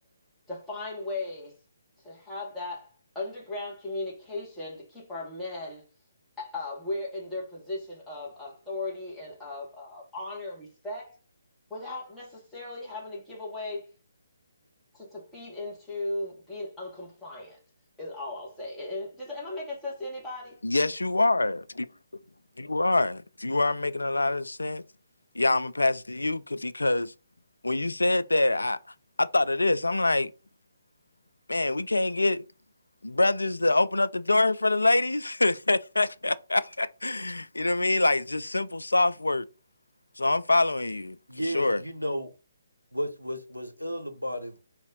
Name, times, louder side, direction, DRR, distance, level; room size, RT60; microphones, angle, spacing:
voice 1, 0.5-1.6 2.0-5.8 6.4-11.2 11.7-13.9 14.9-17.6 18.0-20.6, left 2 dB, 5° left, 1.5 m, -37 dB
voice 2, 20.6-21.6 22.6-24.8 25.4-27.1 27.6-28.8 29.2-30.3 31.5-32.4 33.0-39.4 40.2-41.2 41.5-41.8, left 2 dB, 75° left, 0.3 m, -25 dB
voice 3, 41.3-42.3 42.9-44.6, equal, 90° right, 0.8 m, -33 dB
4.0 x 2.5 x 3.8 m
figure-of-eight pair, 140°, 0 cm